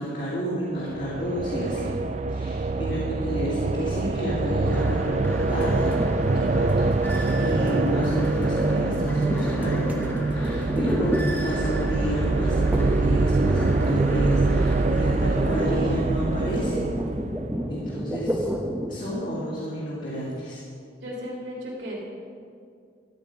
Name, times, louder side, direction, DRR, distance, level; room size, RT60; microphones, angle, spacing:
voice 1, 0.0-1.9 2.3-5.9 6.3-6.9 7.3-16.9 17.7-18.4 18.9-20.6, equal, 45° left, -8 dB, 2.4 m, -30 dB
sound 1, 0.8-17.8, right 3 dB, 40° right, 0.4 m, -24 dB
sound 2, 4.7-15.6, equal, 10° left, 1.2 m, -36 dB
sound 3, 5.6-11.9 12.7-13.1 13.4-19.1, equal, 10° right, 0.9 m, -31 dB
voice 2, 7.7-8.2 21.0-22.0, equal, 80° right, -5 dB, 3.0 m, -36 dB
13.5 x 9.1 x 5.2 m, 2.3 s
head